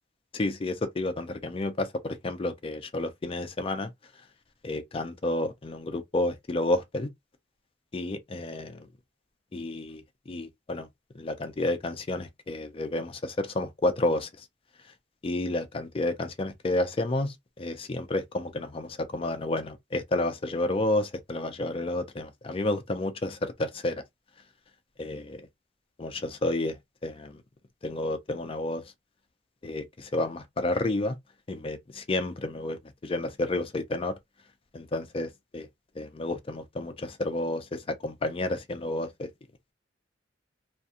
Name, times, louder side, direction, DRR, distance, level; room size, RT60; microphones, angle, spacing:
voice 1, 0.3-3.9 4.6-7.1 7.9-8.9 9.5-10.9 11.1-14.5 15.2-24.0 25.0-25.5 26.0-27.4 27.8-28.8 29.6-31.2 31.5-34.1 34.7-35.7 36.0-39.3, left 2 dB, 30° left, 0.4 m, -30 dB
2.4 x 2.2 x 2.7 m
head